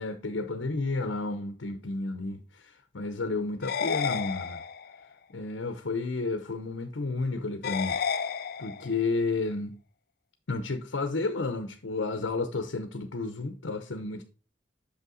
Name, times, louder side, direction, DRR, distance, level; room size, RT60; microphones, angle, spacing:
voice 1, 0.0-4.6 5.3-8.0 8.6-9.7 10.5-14.2, left 3 dB, 85° left, 0.7 m, -31 dB
sound 1, 3.6-5.0 7.6-9.0, left 6 dB, 50° left, 0.4 m, -31 dB
6.5 x 5.6 x 3.8 m
head